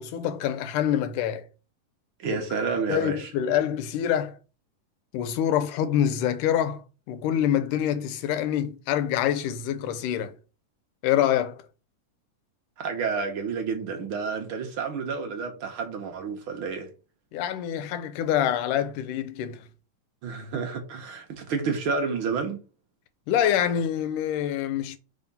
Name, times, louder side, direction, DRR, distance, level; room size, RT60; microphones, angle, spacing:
voice 1, 0.0-1.5 2.3-2.4 2.9-4.4 5.1-10.4 11.0-11.7 17.3-19.7 23.3-25.0, left 10 dB, 80° left, 2.2 m, -26 dB
voice 2, 2.2-3.3 12.8-16.9 20.2-22.6, right 5 dB, 65° right, 1.3 m, -30 dB
4.9 x 3.6 x 5.4 m
omnidirectional pair, 3.8 m